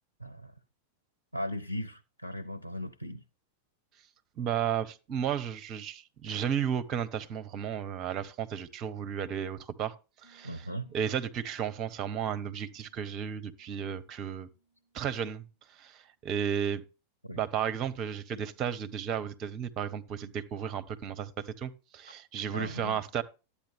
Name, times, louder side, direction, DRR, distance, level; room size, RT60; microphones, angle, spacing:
voice 1, 0.2-0.5 1.3-3.2 10.4-10.9 17.2-17.4 22.5-23.0, equal, 85° right, 0.4 m, -37 dB
voice 2, 4.4-9.9 10.2-14.5 14.9-15.4 15.8-16.8 17.4-23.2, right 8 dB, 35° right, 0.9 m, -33 dB
sound 1, 10.2-15.8, right 3 dB, 15° left, 5.3 m, -66 dB
12.0 x 8.6 x 3.5 m
figure-of-eight pair, 90°, 0 cm